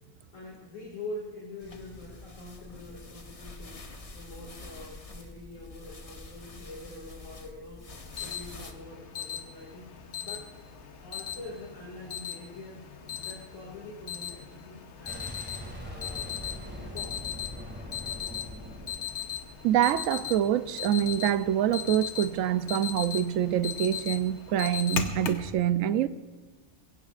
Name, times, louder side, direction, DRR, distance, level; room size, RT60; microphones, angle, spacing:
voice 1, 0.3-3.8 4.1-10.5 11.0-12.8 13.2-15.4 15.8-16.4 16.8-17.3, left 2 dB, 80° left, 2.6 m, -44 dB
sound 1, 1.6-8.7, left 3 dB, 30° left, 0.9 m, -46 dB
Alarm, 7.9-25.5, left 8 dB, 65° left, 1.2 m, -38 dB
Boom, 15.1-19.9, equal, 10° right, 1.9 m, -42 dB
voice 2, 19.6-26.1, right 11 dB, 85° right, 1.0 m, -26 dB
22.0 x 16.0 x 2.4 m
omnidirectional pair, 1.3 m